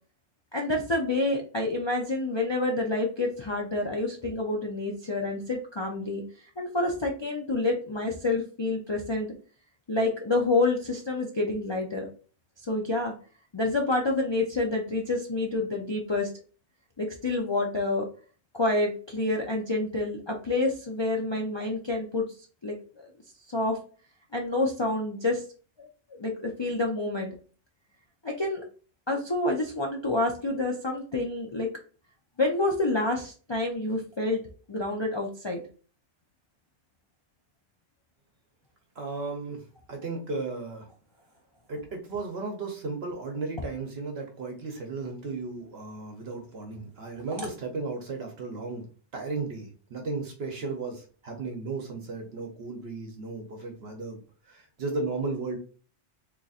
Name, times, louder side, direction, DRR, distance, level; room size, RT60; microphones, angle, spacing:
voice 1, 0.5-6.2 6.6-9.3 9.9-12.1 12.7-13.1 13.5-16.3 17.0-18.1 18.5-22.3 22.6-23.1 23.5-23.8 24.3-25.4 25.8-25.9 26.2-27.4 28.2-28.6 29.1-31.7 32.4-34.4 34.7-35.6, left 2 dB, 45° left, -1 dB, 0.3 m, -28 dB
voice 2, 39.0-40.9 41.7-48.8 49.1-54.2 54.5-55.6, right 3 dB, 60° right, 2 dB, 1.0 m, -35 dB
3.9 x 2.9 x 2.4 m, 0.39 s
omnidirectional pair, 1.2 m